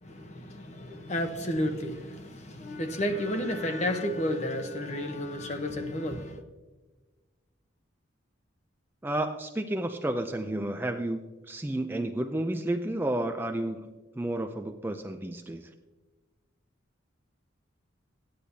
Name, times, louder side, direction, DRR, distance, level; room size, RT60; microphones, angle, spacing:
voice 1, 0.0-6.4, left 1 dB, 35° left, 1.0 m, -32 dB
voice 2, 9.0-15.7, right 1 dB, 10° right, 0.4 m, -31 dB
14.5 x 10.0 x 2.7 m
head